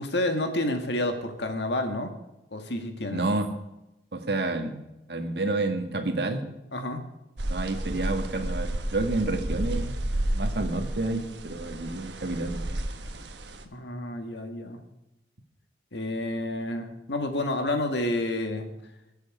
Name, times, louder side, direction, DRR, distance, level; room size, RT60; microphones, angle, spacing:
voice 1, 0.0-2.1 2.5-3.2 6.7-7.0 13.7-14.8 15.9-18.7, left 1 dB, 80° left, 6 dB, 1.8 m, -29 dB
voice 2, 3.1-3.5 4.1-4.8 5.1-6.5 7.5-10.0 10.3-12.7, right 2 dB, 70° right, 6 dB, 1.6 m, -29 dB
sound 1, 7.4-13.6, right 1 dB, 85° right, 1.3 m, -32 dB
21.5 x 8.1 x 4.8 m, 0.93 s
head